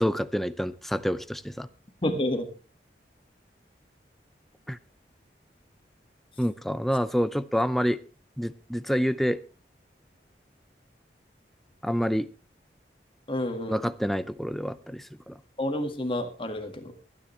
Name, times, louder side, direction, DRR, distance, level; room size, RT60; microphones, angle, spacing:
voice 1, 0.0-1.7 4.7-4.8 6.4-8.0 8.4-9.4 11.8-12.3 13.7-15.4, equal, ahead, 13 dB, 0.5 m, -27 dB
voice 2, 2.0-2.5 13.3-13.8 15.6-16.9, left 1 dB, 30° left, 6 dB, 1.7 m, -29 dB
23.5 x 10.0 x 3.2 m, 0.34 s
head